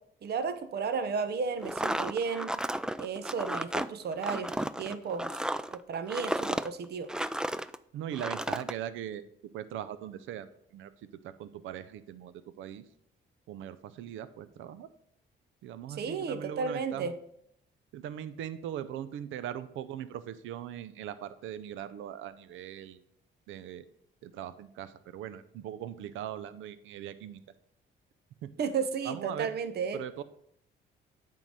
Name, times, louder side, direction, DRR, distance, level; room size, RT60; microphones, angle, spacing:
voice 1, 0.2-2.6 3.0-5.4 5.7-7.1 15.9-17.1 28.6-30.0, right 5 dB, 55° right, 11 dB, 0.8 m, -33 dB
sound 1, 1.6-7.8 8.1-8.7, right 1 dB, 5° right, 0.3 m, -33 dB
voice 2, 7.9-9.2 9.5-10.9 11.2-12.8 13.5-14.9 15.6-17.1 17.9-23.0 23.5-23.9 24.2-27.4 28.4-28.5 29.0-29.5 29.9-30.2, right 10 dB, 80° right, 14 dB, 0.5 m, -40 dB
9.1 x 3.8 x 6.2 m, 0.74 s
cardioid pair, 90°, 20 cm